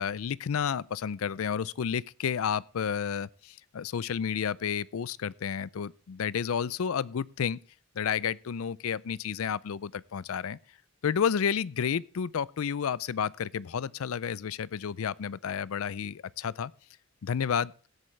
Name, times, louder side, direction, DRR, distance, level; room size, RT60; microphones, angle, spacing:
voice 1, 0.0-7.6 8.0-10.6 11.0-16.7 17.2-17.7, left 7 dB, 70° left, 0.4 m, -31 dB
16.5 x 8.5 x 3.2 m
head